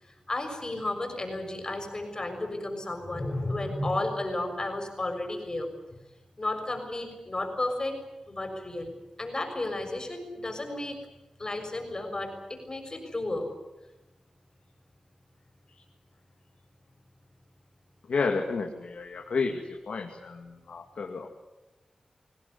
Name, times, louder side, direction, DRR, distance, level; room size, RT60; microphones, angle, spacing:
voice 1, 0.0-5.7 6.4-8.0 8.3-8.9 9.2-11.0 11.4-13.5, left 2 dB, 35° left, 5 dB, 6.5 m, -33 dB
voice 2, 18.1-19.6 19.9-21.3, left 4 dB, 90° left, 2 dB, 2.4 m, -31 dB
24.0 x 18.0 x 9.8 m, 1.1 s
cardioid pair, 65°, 2 cm